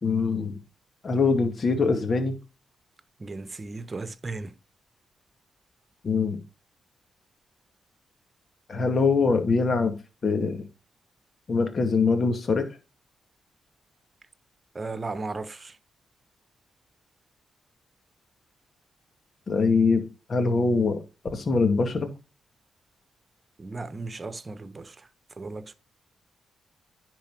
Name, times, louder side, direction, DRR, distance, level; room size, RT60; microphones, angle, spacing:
voice 1, 0.0-0.6 1.0-2.3 6.0-6.4 8.7-10.0 10.2-10.6 11.5-12.8 19.5-21.0 21.3-22.1, left 4 dB, 50° left, 2.2 m, -23 dB
voice 2, 3.2-4.5 14.7-15.8 23.6-25.1 25.4-25.7, right 3 dB, 35° right, 1.1 m, -36 dB
10.5 x 4.7 x 4.7 m
hypercardioid pair, 45°, 0 cm